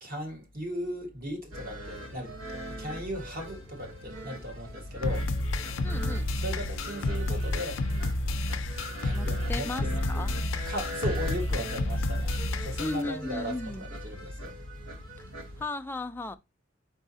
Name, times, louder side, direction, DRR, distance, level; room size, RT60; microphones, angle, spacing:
voice 1, 0.0-5.3 6.4-7.8 9.0-10.3 10.6-12.3 12.6-14.5, equal, 45° right, 1.6 m, -37 dB
sound 1, 1.5-15.7, equal, 75° right, 1.1 m, -42 dB
sound 2, 5.0-13.0, left 2 dB, 75° left, 0.6 m, -30 dB
voice 2, 5.8-6.3 9.1-10.3 12.8-13.9 15.6-16.4, left 2 dB, 10° left, 0.3 m, -35 dB
4.6 x 4.0 x 2.7 m
head